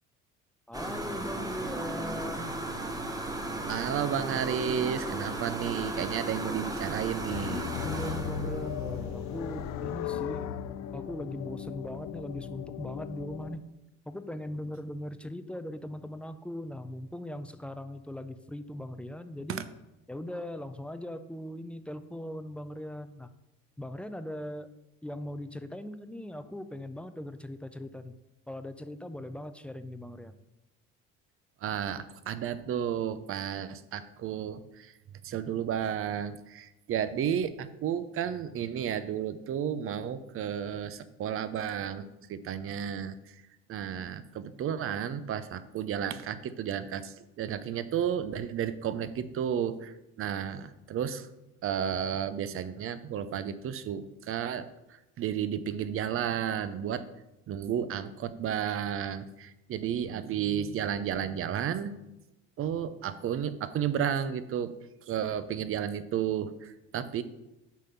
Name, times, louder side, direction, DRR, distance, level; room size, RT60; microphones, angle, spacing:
voice 1, 0.7-2.6 7.8-10.5 10.9-13.7 14.1-19.6 20.1-23.3 23.8-24.7 25.0-28.1 28.5-30.3, left 1 dB, 5° left, 10 dB, 0.4 m, -39 dB
sound 1, 0.7-9.7, right 2 dB, 10° right, 0.9 m, -36 dB
voice 2, 3.7-7.6 19.5-19.6 31.6-34.9 35.2-43.2 43.7-51.3 51.6-54.7 55.2-57.1 57.5-61.9 62.6-64.7 65.1-67.2, right 9 dB, 45° right, 13 dB, 0.6 m, -32 dB
sound 2, 7.3-13.6, left 9 dB, 65° left, 0.5 m, -37 dB
7.3 x 3.7 x 5.7 m, 0.94 s
supercardioid pair, 95°, 30 cm